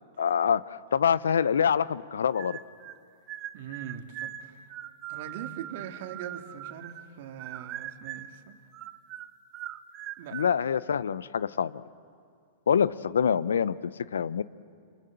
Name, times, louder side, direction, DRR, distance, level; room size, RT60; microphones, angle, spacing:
voice 1, 0.2-0.6 0.9-2.6 10.3-11.8 12.7-13.8 14.1-14.4, left 7 dB, 80° left, 19 dB, 0.7 m, -25 dB
sound 1, 2.4-3.0 3.3-7.1 7.4-8.4 8.7-10.5, right 12 dB, 35° right, 1.1 m, -41 dB
voice 2, 3.5-4.6 5.1-8.6 10.2-10.4, right 9 dB, 60° right, 5 dB, 2.2 m, -41 dB
28.0 x 27.5 x 7.8 m, 2.3 s
hypercardioid pair, 110°, 0 cm